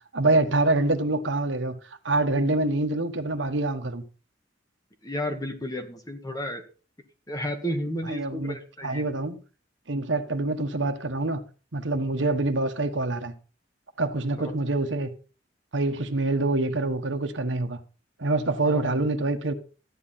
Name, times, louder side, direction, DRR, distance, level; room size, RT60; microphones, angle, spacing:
voice 1, 0.1-1.8 2.0-4.0 8.1-8.6 8.8-9.4 9.9-11.4 11.7-13.3 14.0-15.1 15.7-17.8 18.2-19.5, right 2 dB, 85° right, 1.3 m, -25 dB
voice 2, 5.0-6.6 7.3-9.0 12.2-12.3 14.4-14.5 18.6-19.0, equal, 20° left, 1.8 m, -32 dB
13.5 x 9.7 x 4.2 m
head